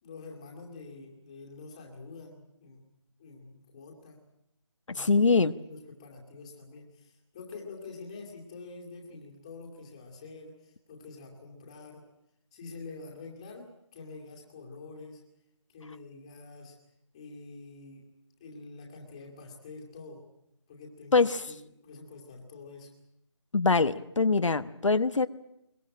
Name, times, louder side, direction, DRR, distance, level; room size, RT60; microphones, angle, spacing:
voice 1, 0.0-2.8 3.2-4.2 4.9-12.0 12.5-13.7 13.9-15.2 15.7-16.8 17.1-18.0 18.4-20.2 20.7-22.9, left 3 dB, 10° left, -1 dB, 2.5 m, -46 dB
voice 2, 4.9-5.5 21.1-21.4 23.5-25.3, left 4 dB, 85° left, 11 dB, 1.2 m, -23 dB
22.5 x 21.0 x 8.8 m, 0.81 s
figure-of-eight pair, 180°, 16 cm